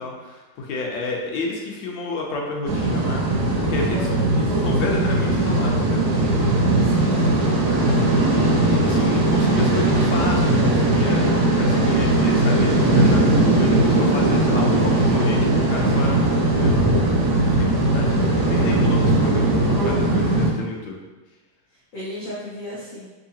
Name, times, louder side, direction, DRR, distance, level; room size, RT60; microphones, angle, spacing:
voice 1, 0.0-6.1 7.7-11.3 11.6-15.4 15.7-16.8 17.4-21.0, left 3 dB, 80° left, 0 dB, 1.4 m, -31 dB
sound 1, 2.7-20.5, right 2 dB, 70° right, 1.0 m, -19 dB
voice 2, 3.9-4.4 6.8-7.5 17.7-18.5 21.7-23.1, left 1 dB, 60° left, -8 dB, 0.9 m, -36 dB
3.7 x 2.8 x 2.8 m, 1.2 s
omnidirectional pair, 2.2 m